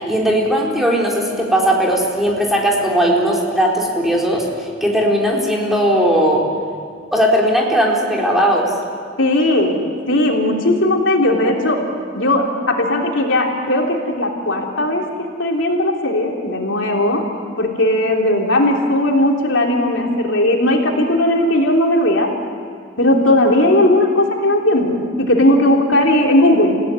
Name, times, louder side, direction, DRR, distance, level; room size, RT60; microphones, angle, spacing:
voice 1, 0.1-6.4 7.1-8.7, equal, ahead, -3 dB, 4.2 m, -17 dB
voice 2, 9.2-9.8 10.1-11.8 12.1-15.0 15.4-17.2 17.6-22.3 23.0-26.7, left 1 dB, 85° left, 0 dB, 3.4 m, -17 dB
29.0 x 16.5 x 9.6 m, 2.1 s
head